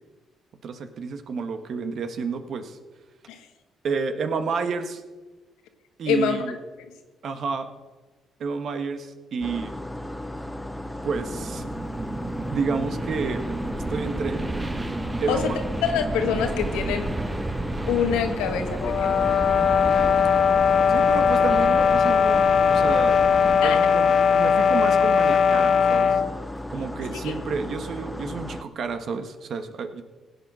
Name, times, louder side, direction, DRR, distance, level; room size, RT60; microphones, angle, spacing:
voice 1, 0.6-2.8 3.8-5.0 6.0-6.6 7.2-7.7 8.4-9.7 11.0-11.7 12.5-13.4 13.8-14.4 15.2-15.5 20.9-26.2 26.7-30.0, right 5 dB, 60° right, 8 dB, 1.4 m, -30 dB
voice 2, 6.0-6.4 15.3-15.5 15.8-17.1 17.9-19.3 23.6-23.8 27.2-27.3, left 7 dB, 90° left, 6 dB, 1.4 m, -25 dB
sound 1, 9.4-28.6, left 1 dB, 10° left, 0.7 m, -35 dB
sound 2, 11.1-23.6, right 2 dB, 25° right, 1.3 m, -32 dB
sound 3, 18.8-26.3, left 7 dB, 60° left, 0.6 m, -19 dB
16.0 x 8.4 x 6.2 m, 1.3 s
supercardioid pair, 70°, 0 cm